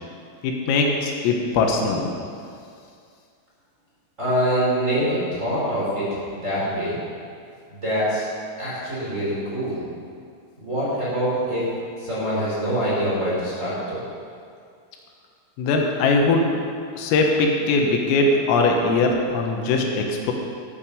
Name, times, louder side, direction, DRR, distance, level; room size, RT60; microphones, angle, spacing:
voice 1, 0.4-2.1 15.6-16.5 17.0-20.3, left 3 dB, 80° left, 1 dB, 3.9 m, -21 dB
voice 2, 4.2-6.1 6.3-7.0 7.7-8.2 8.6-9.8 10.6-11.6 12.0-14.0, equal, 15° right, -9 dB, 4.0 m, -24 dB
14.5 x 8.7 x 7.0 m, 2.3 s
omnidirectional pair, 5.9 m